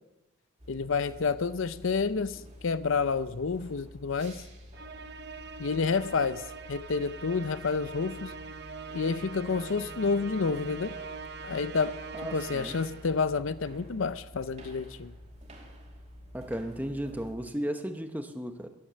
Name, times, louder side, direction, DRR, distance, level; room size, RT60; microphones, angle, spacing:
sound 1, 0.6-17.4, equal, 30° right, 2.5 m, -50 dB
voice 1, 0.7-4.4 5.6-6.4 6.7-8.3 8.9-10.9 11.4-11.9 12.3-15.1, left 4 dB, 65° left, 14 dB, 0.6 m, -29 dB
Musical instrument, 4.7-13.2, right 5 dB, 50° right, 0.9 m, -43 dB
voice 2, 12.1-12.8 16.3-18.7, equal, 10° right, 6 dB, 1.0 m, -35 dB
13.5 x 12.0 x 6.8 m, 1.0 s
head